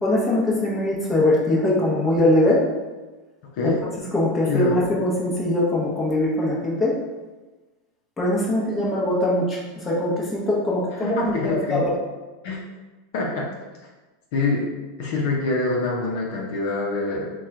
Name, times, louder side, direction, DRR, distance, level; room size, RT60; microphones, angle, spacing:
voice 1, 0.0-2.6 3.6-3.7 4.1-6.9 8.2-11.2 11.4-11.9, left 1 dB, 15° left, -5 dB, 0.9 m, -22 dB
voice 2, 3.5-3.9 4.5-4.8 11.0-11.9 12.4-12.6 13.1-13.5 14.3-14.7 15.0-17.3, left 3 dB, 65° left, -2 dB, 0.6 m, -25 dB
2.9 x 2.3 x 3.6 m, 1.2 s
supercardioid pair, 135°, 0 cm